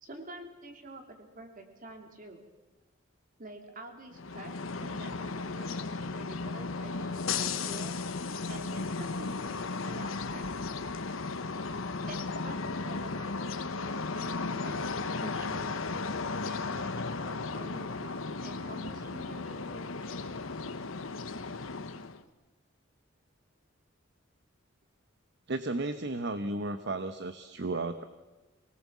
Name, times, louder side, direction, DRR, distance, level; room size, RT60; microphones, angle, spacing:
voice 1, 0.0-2.4 3.4-4.5 4.8-8.0 8.5-10.5 12.1-13.4 13.7-14.9 15.1-15.8 16.4-20.2, right 1 dB, 40° right, 4 dB, 3.0 m, -47 dB
sound 1, 4.1-22.2, left 4 dB, 85° left, 1.1 m, -35 dB
voice 2, 25.5-28.1, right 2 dB, 60° right, 10 dB, 0.9 m, -34 dB
23.5 x 19.0 x 7.4 m, 1.2 s
head